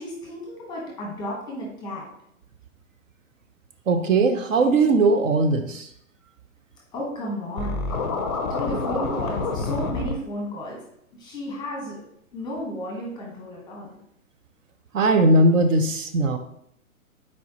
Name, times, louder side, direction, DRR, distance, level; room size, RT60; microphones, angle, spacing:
voice 1, 0.0-2.0 6.9-8.0 8.5-10.8 11.1-12.0 12.3-13.9, equal, 10° left, -3 dB, 0.8 m, -33 dB
voice 2, 3.9-5.9 14.9-16.4, right 2 dB, 60° right, 7 dB, 0.6 m, -19 dB
Scratching (performance technique), 7.6-10.1, left 3 dB, 30° left, 0.4 m, -27 dB
4.3 x 4.2 x 2.8 m, 0.72 s
hypercardioid pair, 140°, 44 cm